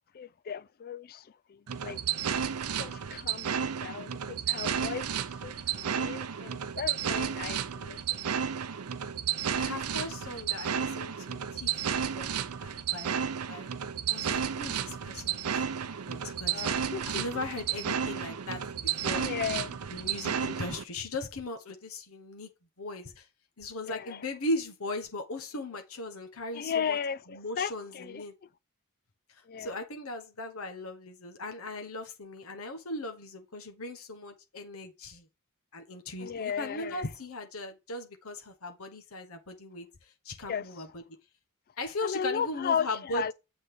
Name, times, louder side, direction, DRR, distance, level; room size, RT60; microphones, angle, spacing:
voice 1, 0.1-2.0 2.8-8.3 16.5-17.4 19.1-19.8 23.8-24.2 26.5-28.2 29.5-29.8 36.2-37.0 40.5-40.7 42.0-43.3, left 7 dB, 45° left, 0.4 m, -35 dB
sound 1, 1.7-20.8, right 8 dB, 90° right, 0.6 m, -32 dB
voice 2, 9.6-11.8 12.1-13.7 14.1-16.8 17.0-19.5 19.9-22.5 22.8-23.3 23.6-27.0 27.3-28.3 29.3-35.3 35.7-41.0 41.8-43.3, left 2 dB, 75° left, 1.3 m, -38 dB
7.7 x 4.0 x 4.9 m
head